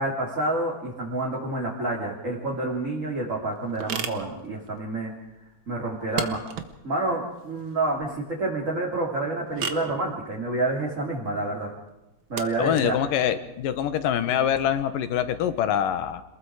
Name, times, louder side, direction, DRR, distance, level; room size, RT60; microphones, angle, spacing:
voice 1, 0.0-5.1 5.7-6.4 6.8-11.7 12.3-12.9, right 2 dB, 20° right, -3 dB, 3.2 m, -28 dB
sound 1, 2.4-14.8, right 6 dB, 80° right, 1.1 m, -39 dB
voice 2, 12.6-16.2, left 9 dB, 70° left, 12 dB, 2.6 m, -25 dB
27.5 x 21.5 x 4.9 m, 0.95 s
omnidirectional pair, 4.5 m